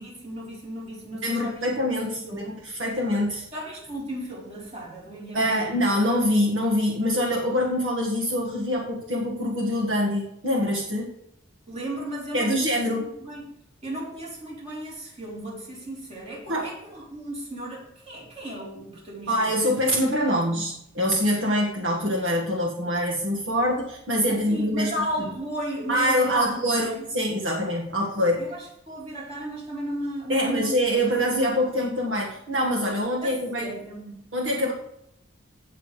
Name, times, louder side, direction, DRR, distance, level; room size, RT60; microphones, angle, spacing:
voice 1, 0.0-1.7 2.0-2.5 3.5-5.8 11.7-13.5 13.8-19.6 20.3-20.7 24.3-27.1 28.4-30.8 31.3-31.6 33.2-34.1, right 1 dB, 35° right, -4 dB, 4.0 m, -35 dB
voice 2, 1.2-2.4 2.8-3.4 5.3-11.1 12.3-13.1 16.5-16.7 19.3-24.9 25.9-28.5 30.3-33.7 34.3-34.7, equal, 70° right, -3 dB, 1.8 m, -24 dB
16.5 x 6.8 x 3.3 m, 0.76 s
head